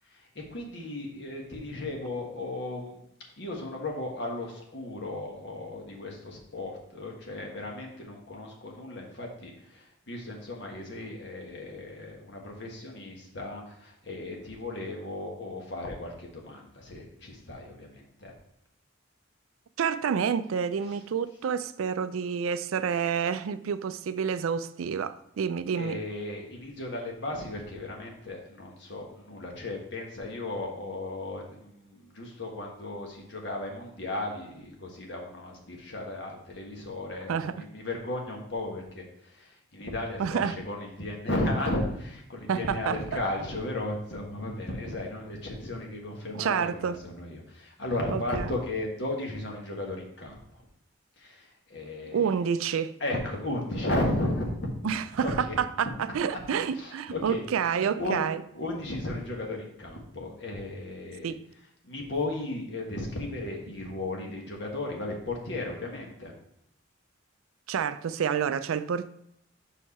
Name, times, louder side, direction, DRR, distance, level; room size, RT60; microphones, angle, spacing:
voice 1, 0.3-3.0 3.4-18.3 25.8-50.4 51.2-52.3 53.0-54.6 55.2-55.6 56.8-58.2 58.5-61.3 61.8-66.3, left 1 dB, 55° left, 1.4 m, -35 dB
voice 2, 19.8-26.0 37.3-37.7 40.2-40.6 42.5-43.0 46.3-47.0 48.1-48.6 52.1-52.9 54.8-58.4 61.2-61.4 67.7-69.1, right 7 dB, 85° right, 0.4 m, -29 dB
5.6 x 4.6 x 4.2 m
head